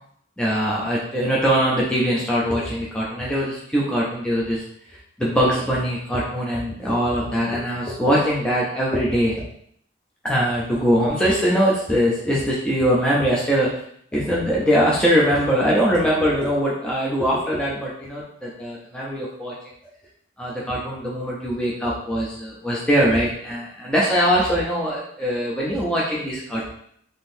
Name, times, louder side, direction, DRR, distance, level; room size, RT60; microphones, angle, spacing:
voice 1, 0.4-4.6 5.2-9.4 10.2-13.7 14.1-19.5 20.4-26.7, equal, 5° left, -6 dB, 0.4 m, -22 dB
3.5 x 2.6 x 2.6 m, 0.68 s
head